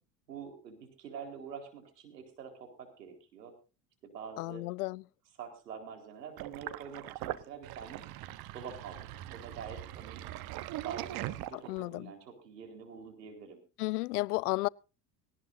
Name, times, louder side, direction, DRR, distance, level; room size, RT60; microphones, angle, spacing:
voice 1, 0.3-3.5 4.0-4.6 5.4-8.0 8.5-9.0 9.3-10.2 10.8-13.6, right 6 dB, 80° right, 4.5 m, -46 dB
voice 2, 4.4-5.0 11.5-12.1 13.8-14.7, left 21 dB, 70° left, 0.6 m, -33 dB
Sink (filling or washing), 6.4-11.9, right 15 dB, 50° right, 1.1 m, -41 dB
18.5 x 18.5 x 2.7 m
hypercardioid pair, 85°, 48 cm